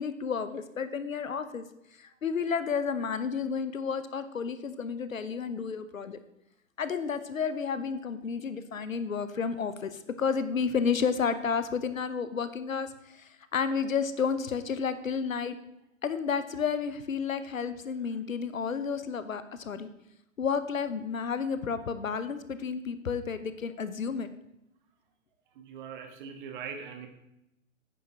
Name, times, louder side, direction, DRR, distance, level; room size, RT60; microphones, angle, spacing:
voice 1, 0.0-1.7 2.0-6.2 6.8-15.6 16.0-19.9 20.4-24.3, left 6 dB, 75° left, 12 dB, 0.8 m, -31 dB
voice 2, 25.5-27.1, right 6 dB, 35° right, 5 dB, 1.4 m, -41 dB
9.4 x 9.3 x 2.9 m, 0.85 s
figure-of-eight pair, 115°, 41 cm